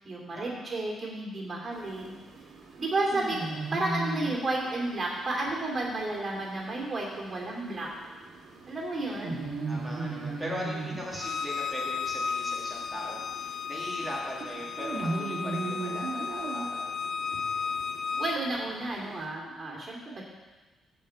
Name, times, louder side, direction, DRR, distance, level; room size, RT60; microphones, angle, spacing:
voice 1, 0.0-2.1 2.8-3.5 3.7-7.9 8.7-9.4 18.2-20.2, right 2 dB, 35° right, -1 dB, 2.6 m, -32 dB
sound 1, 1.7-19.2, right 3 dB, 65° right, 1.8 m, -39 dB
voice 2, 9.7-17.0, equal, 5° left, -5 dB, 2.0 m, -39 dB
Bowed string instrument, 11.1-18.4, left 6 dB, 55° left, 0.4 m, -34 dB
14.0 x 5.2 x 4.6 m, 1.3 s
cardioid pair, 90°, 0 cm